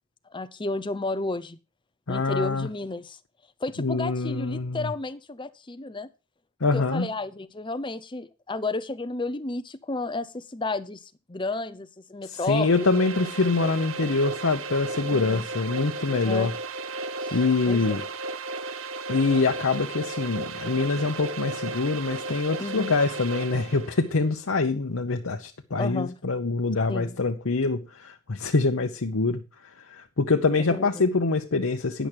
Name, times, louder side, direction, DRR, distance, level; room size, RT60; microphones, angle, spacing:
voice 1, 0.3-1.6 2.1-3.2 3.6-6.1 6.7-12.9 15.1-15.5 16.2-16.5 17.2-17.4 17.7-17.8 22.6-22.9 25.8-26.2 26.9-27.2 30.6-31.0, left 2 dB, 25° left, 0.7 m, -32 dB
voice 2, 2.1-2.7 3.8-4.9 6.6-7.1 12.3-16.5 17.3-18.0 19.1-29.4 29.9-32.1, left 3 dB, 80° left, 0.9 m, -25 dB
sound 1, 12.4-24.0, right 3 dB, 70° right, 0.7 m, -34 dB
10.5 x 6.1 x 6.7 m
head